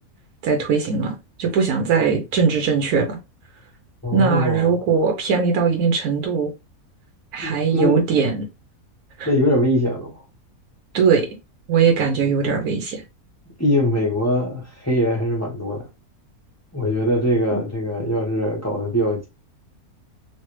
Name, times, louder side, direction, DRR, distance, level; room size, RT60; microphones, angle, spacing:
voice 1, 0.4-3.2 4.1-6.5 7.3-8.4 9.2-9.3 10.9-11.3 11.7-13.0 17.5-17.6, right 6 dB, 80° right, 1.2 m, -20 dB
voice 2, 4.0-4.7 7.4-8.0 9.2-10.2 13.6-15.9 16.7-19.3, left 1 dB, 15° left, 0.8 m, -22 dB
3.2 x 2.5 x 3.0 m
omnidirectional pair, 1.6 m